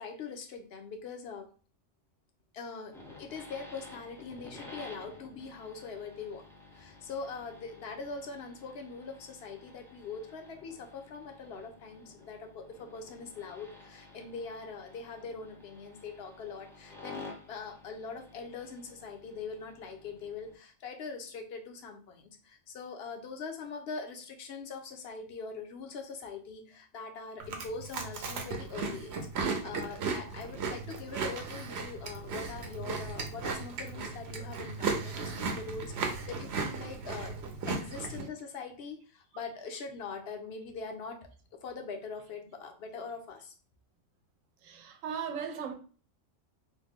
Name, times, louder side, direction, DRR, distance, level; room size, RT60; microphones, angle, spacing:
voice 1, 0.0-1.5 2.5-6.4 6.7-37.4 37.7-43.5, left 4 dB, 60° left, 0.8 m, -42 dB
sound 1, 2.9-20.6, left 3 dB, 5° left, 0.3 m, -52 dB
Chewing mastication, 27.4-38.2, right 4 dB, 65° right, 0.8 m, -36 dB
voice 2, 44.6-45.7, right 7 dB, 90° right, 1.0 m, -38 dB
3.1 x 2.1 x 3.4 m
omnidirectional pair, 1.3 m